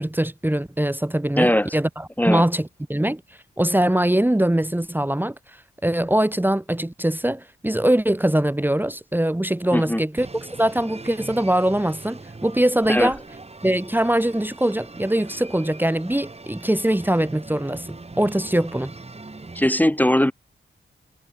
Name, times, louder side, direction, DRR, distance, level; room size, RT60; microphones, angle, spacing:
voice 1, 0.0-3.2 3.6-5.3 5.8-13.2 13.6-18.9, right 1 dB, 10° right, 1.7 m, -22 dB
voice 2, 1.4-1.8 2.2-2.4 9.7-10.0 12.9-13.1 19.6-20.3, left 1 dB, 10° left, 1.8 m, -19 dB
sound 1, 10.2-19.7, right 3 dB, 30° right, 3.6 m, -41 dB
cardioid pair, 60°, 21 cm